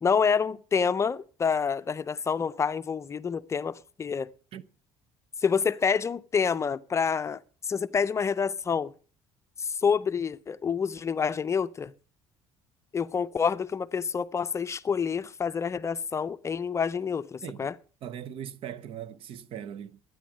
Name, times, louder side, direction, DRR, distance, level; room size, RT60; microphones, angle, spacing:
voice 1, 0.0-4.3 5.4-8.9 9.6-11.9 12.9-17.7, left 6 dB, 25° left, 0.5 m, -28 dB
voice 2, 18.0-20.0, right 9 dB, 60° right, 0.8 m, -40 dB
12.0 x 9.2 x 6.2 m
cardioid pair, 115°, 11 cm